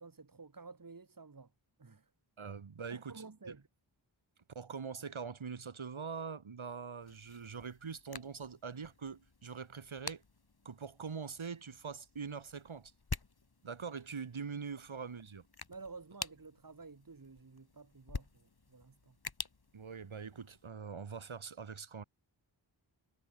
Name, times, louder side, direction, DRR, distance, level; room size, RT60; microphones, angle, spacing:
voice 1, 0.0-1.5 1.8-2.1 2.9-3.7 15.7-19.1, right 4 dB, 45° right, 2.9 m, -52 dB
voice 2, 2.4-3.6 4.5-10.2 10.6-12.9 13.6-15.4 19.7-22.0, right 5 dB, 80° right, 4.6 m, -43 dB
sound 1, 7.0-20.7, left 3 dB, 50° left, 6.9 m, -49 dB
cardioid pair, 55°, 47 cm